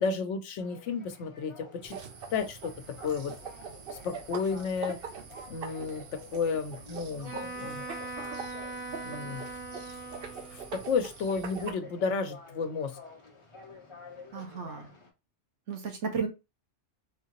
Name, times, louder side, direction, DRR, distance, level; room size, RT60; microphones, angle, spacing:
voice 1, 0.0-2.0 2.3-3.3 3.9-5.0 5.5-7.9 9.0-9.6 10.5-13.0, left 5 dB, 80° left, 8 dB, 1.0 m, -32 dB
sound 1, 0.6-15.1, left 3 dB, 30° left, 0.7 m, -50 dB
sound 2, 1.8-11.7, right 6 dB, 60° right, 0.8 m, -43 dB
Wind instrument woodwind instrument, 7.2-10.8, right 2 dB, 40° right, 1.2 m, -40 dB
voice 2, 14.3-14.9 15.7-16.3, right 5 dB, 80° right, 4 dB, 1.2 m, -33 dB
3.7 x 2.8 x 2.9 m, 0.26 s
omnidirectional pair, 1.2 m